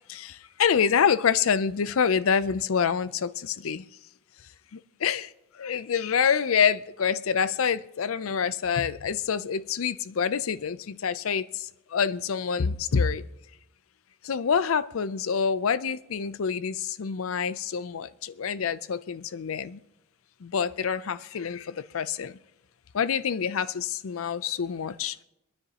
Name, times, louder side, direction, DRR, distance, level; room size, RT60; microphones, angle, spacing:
voice 1, 0.1-3.9 5.0-5.3 5.6-13.2 14.2-19.8 20.4-22.4 22.9-25.2, left 6 dB, 90° left, 0.5 m, -26 dB
25.0 x 9.8 x 2.9 m
head